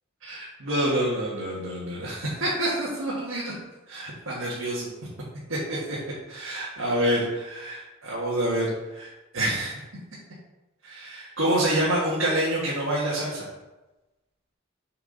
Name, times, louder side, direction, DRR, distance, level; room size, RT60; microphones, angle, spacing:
voice 1, 0.2-3.5 3.9-4.9 5.5-6.0 6.3-9.8 10.8-13.5, right 1 dB, 85° right, -6 dB, 1.6 m, -27 dB
7.4 x 4.8 x 3.9 m, 1.1 s
head